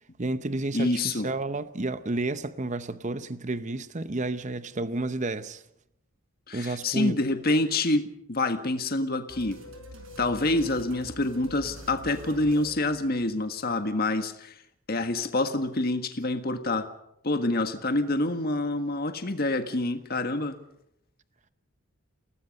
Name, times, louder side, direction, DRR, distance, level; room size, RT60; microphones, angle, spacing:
voice 1, 0.2-5.6 6.5-7.2, right 2 dB, 35° right, 0.8 m, -31 dB
voice 2, 0.7-1.3 6.5-9.6 10.2-14.5 14.9-16.9 17.2-20.6, left 2 dB, 45° left, 1.6 m, -27 dB
sound 1, 9.3-13.6, equal, 70° right, 5.3 m, -45 dB
29.0 x 18.5 x 5.4 m
head